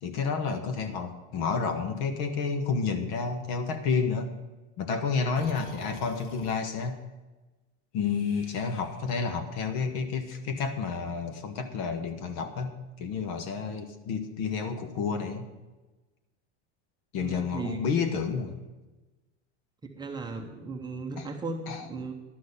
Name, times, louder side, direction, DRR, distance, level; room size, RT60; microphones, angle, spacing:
voice 1, 0.0-4.3 4.8-7.0 7.9-15.4 17.1-18.6 21.2-21.3 21.7-21.8, left 5 dB, 55° left, 8 dB, 1.7 m, -30 dB
Breathing, 5.3-6.7 8.0-9.2, left 2 dB, 75° left, 2.9 m, -48 dB
voice 2, 17.2-17.9 19.8-22.1, right 4 dB, 10° right, 2 dB, 0.8 m, -36 dB
12.0 x 6.3 x 8.6 m, 1.2 s
supercardioid pair, 155°, 35 cm